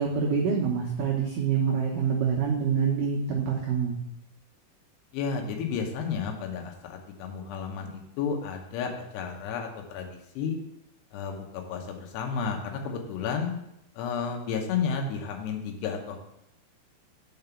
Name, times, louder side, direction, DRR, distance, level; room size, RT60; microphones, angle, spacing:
voice 1, 0.0-4.0, right 6 dB, 75° right, -2 dB, 2.0 m, -26 dB
voice 2, 5.1-10.6 11.1-13.5 14.0-16.2, left 6 dB, 75° left, 2 dB, 3.0 m, -32 dB
5.9 x 5.4 x 6.7 m, 0.81 s
omnidirectional pair, 5.1 m